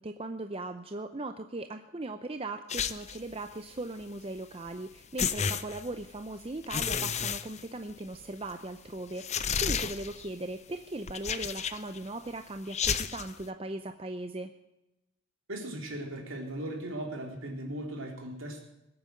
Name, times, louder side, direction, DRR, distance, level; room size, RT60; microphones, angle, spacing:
voice 1, 0.0-14.5, right 2 dB, 25° right, 7 dB, 0.6 m, -39 dB
sound 1, 2.7-3.3 4.7-4.8 5.2-6.2 6.6-8.2 8.5-8.6 9.2-10.3 11.1-12.0 12.7-13.3, left 7 dB, 30° left, 0.6 m, -32 dB
voice 2, 15.5-18.6, right 1 dB, 65° right, 1 dB, 3.6 m, -38 dB
20.0 x 8.8 x 7.8 m, 0.94 s
head